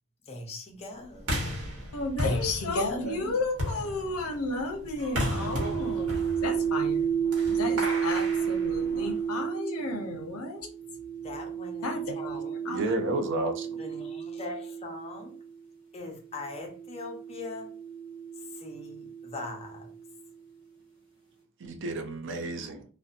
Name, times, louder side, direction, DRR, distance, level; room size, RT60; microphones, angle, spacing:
voice 1, 0.2-1.5 11.2-11.9 12.2-12.6 13.8-15.4 15.9-17.7 18.4-19.9, left 3 dB, 30° left, 0.6 m, -41 dB
sound 1, 1.2-9.3, equal, 90° right, 1.1 m, -35 dB
voice 2, 1.9-7.1 7.5-10.7 11.8-13.0, left 2 dB, 70° left, 0.6 m, -33 dB
sound 2, 5.1-15.5 16.4-20.2, right 7 dB, 20° right, 1.1 m, -32 dB
voice 3, 12.7-13.8 21.6-22.9, right 2 dB, 55° right, 0.4 m, -31 dB
2.6 x 2.1 x 2.4 m
head